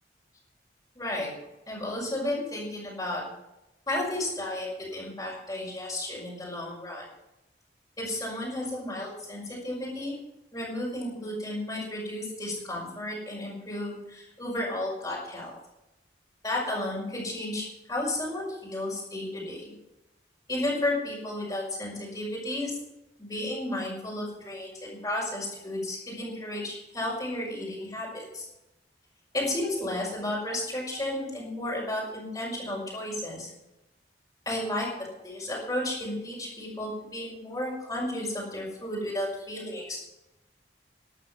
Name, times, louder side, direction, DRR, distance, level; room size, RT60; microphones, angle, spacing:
voice 1, 1.0-1.3 1.7-3.2 3.9-7.1 8.0-10.1 10.5-15.5 16.4-19.7 20.5-22.8 23.2-24.7 25.0-28.5 29.3-33.5 34.5-34.9 35.2-40.0, left 1 dB, 20° left, -5 dB, 5.4 m, -33 dB
13.0 x 11.5 x 6.0 m, 0.93 s
head